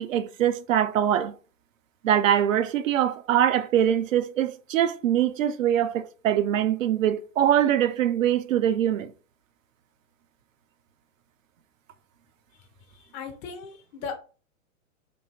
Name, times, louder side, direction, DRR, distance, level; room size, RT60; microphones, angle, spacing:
voice 1, 0.0-1.4 2.0-9.1, right 10 dB, 70° right, 0.6 m, -23 dB
voice 2, 12.9-14.2, left 5 dB, 15° left, 0.5 m, -37 dB
3.4 x 2.7 x 4.2 m
hypercardioid pair, 145°, 41 cm